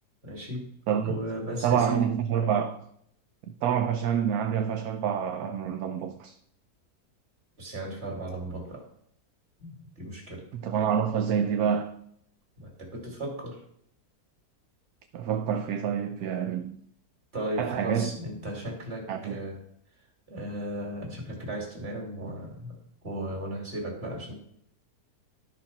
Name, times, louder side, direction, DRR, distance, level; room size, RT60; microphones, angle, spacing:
voice 1, 0.2-0.7 1.0-2.0 7.6-8.8 9.6-10.4 12.6-13.6 17.3-19.6 20.3-22.7 23.0-24.3, right 1 dB, 40° right, 2.8 m, -36 dB
voice 2, 0.9-1.2 1.6-2.9 3.6-6.4 10.5-12.0 15.1-16.8 17.6-18.1 19.1-19.4, right 8 dB, 75° right, 1.1 m, -27 dB
12.5 x 4.3 x 5.8 m
omnidirectional pair, 1.6 m